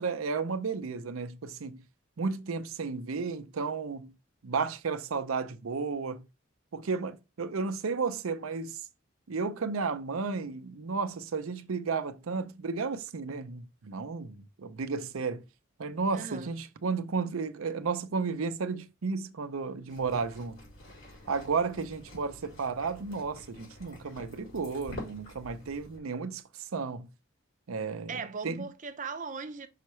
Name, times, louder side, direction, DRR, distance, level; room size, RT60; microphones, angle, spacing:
voice 1, 0.0-1.8 2.2-4.1 4.4-6.3 6.7-8.8 9.3-15.4 15.8-20.6 21.3-26.4 26.7-27.1 27.7-28.2 28.4-28.6, right 4 dB, 90° right, 0.6 m, -33 dB
voice 2, 16.1-16.5 28.1-29.7, right 5 dB, 40° right, 0.6 m, -38 dB
sound 1, 19.9-26.0, left 1 dB, 70° left, 4.2 m, -48 dB
5.6 x 5.6 x 3.1 m
head